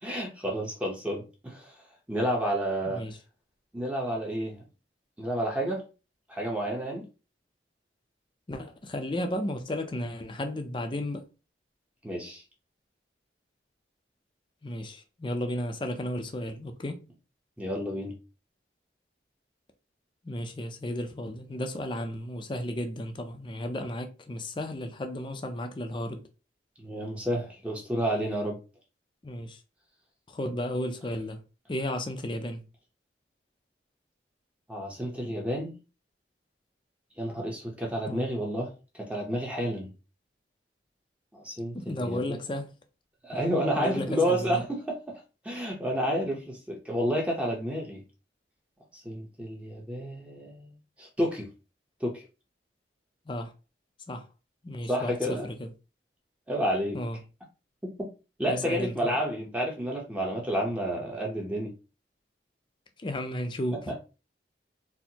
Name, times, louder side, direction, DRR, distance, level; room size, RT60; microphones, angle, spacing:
voice 1, 0.0-1.7 2.1-3.0 3.7-4.6 5.2-5.8 6.3-7.0 12.0-12.4 17.6-18.1 26.8-28.6 34.7-35.8 37.2-38.7 39.0-39.9 41.3-42.4 43.2-45.0 45.4-48.0 48.9-51.5 52.0-52.2 54.9-55.5 56.5-57.0 57.8-58.1 58.4-61.7 63.9-64.0, equal, 5° right, 0.7 m, -30 dB
voice 2, 2.9-3.2 8.5-11.3 14.6-17.0 20.2-26.2 29.2-29.6 30.3-31.4 31.7-32.6 38.1-38.3 41.7-42.7 43.8-44.6 53.3-53.5 54.1-54.3 54.6-55.7 56.9-57.2 58.5-59.2 63.0-63.8, left 1 dB, 25° left, 0.4 m, -33 dB
4.3 x 2.1 x 2.8 m
head